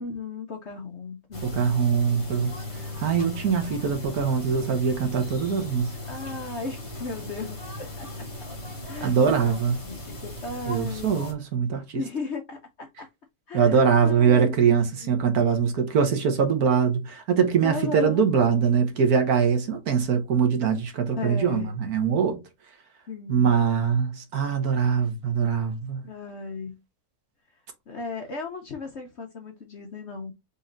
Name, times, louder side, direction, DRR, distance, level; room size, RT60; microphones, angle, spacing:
voice 1, 0.0-1.5 6.1-8.3 8.8-9.6 9.8-11.1 11.9-13.1 13.5-14.7 15.0-15.1 17.6-18.2 21.2-21.7 23.1-23.6 26.0-26.8 27.9-30.3, left 4 dB, 50° left, 0.9 m, -36 dB
sound 1, 1.3-11.3, left 2 dB, 20° left, 1.1 m, -37 dB
voice 2, 1.4-5.9 9.0-9.7 10.7-12.0 13.5-22.4 23.3-26.0, right 6 dB, 65° right, 1.4 m, -23 dB
4.1 x 3.1 x 3.9 m
omnidirectional pair, 1.8 m